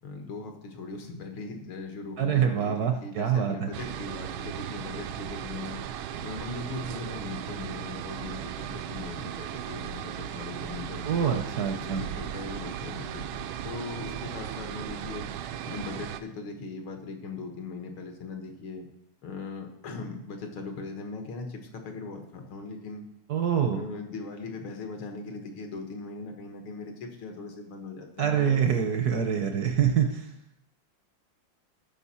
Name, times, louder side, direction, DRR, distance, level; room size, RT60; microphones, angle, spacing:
voice 1, 0.0-5.8 6.2-11.4 11.8-15.3 15.6-18.9 19.2-23.1 23.7-28.6, left 3 dB, 80° left, 4 dB, 2.1 m, -39 dB
voice 2, 2.2-3.7 11.1-12.1 23.3-23.8 28.2-30.4, right 8 dB, 65° right, 5 dB, 1.0 m, -25 dB
sound 1, 3.7-16.2, right 9 dB, 80° right, 1.4 m, -36 dB
13.5 x 5.3 x 4.2 m, 0.79 s
omnidirectional pair, 2.2 m